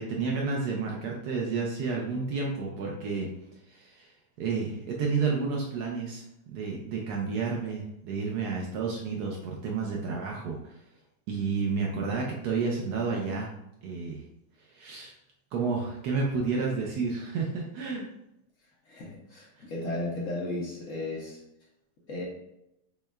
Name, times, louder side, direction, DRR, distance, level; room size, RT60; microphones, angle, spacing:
voice 1, 0.0-3.3 3.7-6.2 6.5-10.8 11.3-13.5 13.8-14.2 14.6-15.1 15.5-18.1 19.6-19.7, right 4 dB, 75° right, -1 dB, 1.1 m, -31 dB
voice 2, 18.9-21.4 22.1-22.3, left 2 dB, 60° left, -3 dB, 1.0 m, -34 dB
6.2 x 2.2 x 2.2 m, 0.84 s
omnidirectional pair, 1.8 m